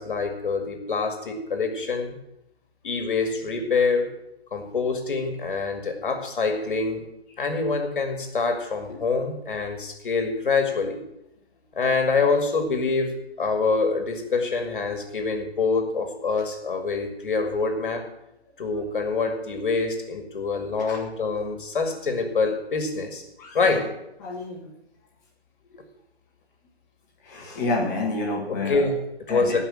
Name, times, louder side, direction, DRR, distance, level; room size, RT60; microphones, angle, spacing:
voice 1, 0.0-2.1 2.8-4.1 4.5-7.0 7.4-11.0 11.8-18.1 18.6-23.2 23.5-23.9 28.5-29.6, left 4 dB, 50° left, 5 dB, 2.2 m, -25 dB
voice 2, 24.2-24.7 27.2-28.8 29.3-29.4, left 2 dB, 15° left, -2 dB, 1.9 m, -29 dB
17.0 x 5.6 x 7.5 m, 0.83 s
hypercardioid pair, 175°, 32 cm